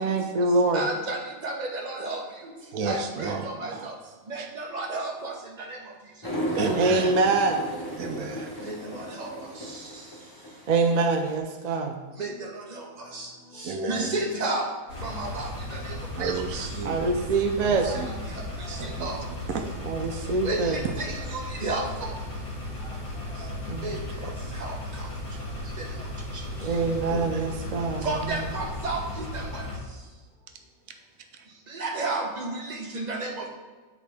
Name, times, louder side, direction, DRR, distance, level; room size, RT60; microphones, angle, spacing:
voice 1, 0.0-0.8 3.7-3.8 6.8-7.7 10.7-12.0 16.8-17.9 19.8-20.8 23.4-24.3 26.6-28.4, right 3 dB, 55° right, 4 dB, 0.4 m, -25 dB
voice 2, 0.7-2.2 2.8-3.9 4.3-5.8 8.6-9.3 12.2-12.8 13.1-13.3 13.6-14.7 15.0-16.0 18.7-19.2 20.4-22.1 23.8-24.0 24.6-24.8 28.0-29.6 31.7-33.5, right 2 dB, 35° right, 0 dB, 1.0 m, -32 dB
voice 3, 2.7-3.7 4.4-4.5 6.6-7.1 8.0-8.5 13.6-14.1 16.2-17.1 17.6-18.1 18.8-19.1 19.5-19.8 27.1-27.4, right 4 dB, 75° right, 5 dB, 1.1 m, -32 dB
sound 1, 6.2-11.3, equal, 20° left, 1.0 m, -34 dB
sound 2, 14.9-29.8, left 1 dB, 85° left, 2.5 m, -36 dB
8.4 x 4.8 x 3.4 m, 1.4 s
omnidirectional pair, 1.5 m